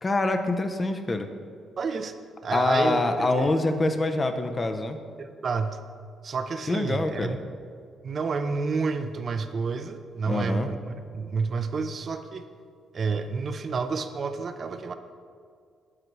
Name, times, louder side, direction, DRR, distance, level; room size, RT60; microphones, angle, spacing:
voice 1, 0.0-1.3 2.5-5.0 6.7-7.4 10.3-10.7, left 2 dB, 30° left, 7 dB, 0.6 m, -25 dB
voice 2, 1.8-2.1 2.4-3.5 5.2-5.8 6.2-7.4 8.0-12.4 12.9-14.9, right 4 dB, 45° right, 9 dB, 0.5 m, -30 dB
9.6 x 7.8 x 3.1 m, 2.3 s
cardioid pair, 90°, 0 cm